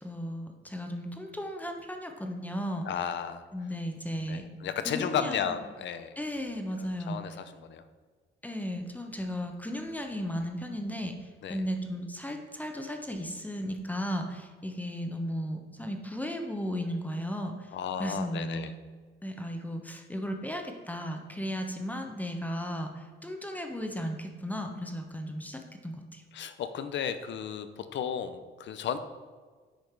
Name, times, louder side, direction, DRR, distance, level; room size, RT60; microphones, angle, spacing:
voice 1, 0.0-2.9 3.5-4.4 4.9-5.4 6.2-7.2 8.4-11.1 11.5-17.7 18.0-18.6 19.2-26.2, equal, 10° left, 4 dB, 1.0 m, -35 dB
voice 2, 2.8-3.7 4.3-6.2 6.8-7.8 11.4-11.6 17.7-18.7 26.3-29.0, left 8 dB, 65° left, 11 dB, 0.7 m, -34 dB
8.8 x 5.1 x 4.6 m, 1.5 s
cardioid pair, 90°, 20 cm